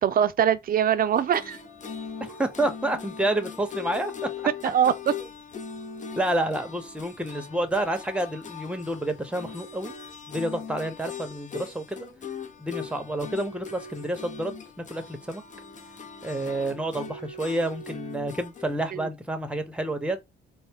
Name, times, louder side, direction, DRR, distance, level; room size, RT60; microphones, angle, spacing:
voice 1, 0.0-1.6 4.6-5.1 18.9-19.1, right 9 dB, 45° right, 0.5 m, -23 dB
sound 1, 1.1-18.8, left 6 dB, 40° left, 0.7 m, -40 dB
voice 2, 2.2-4.1 6.2-9.9 10.3-12.1 12.6-15.4 16.2-20.2, right 1 dB, 5° right, 0.9 m, -29 dB
4.1 x 2.1 x 3.5 m
cardioid pair, 90°, 20 cm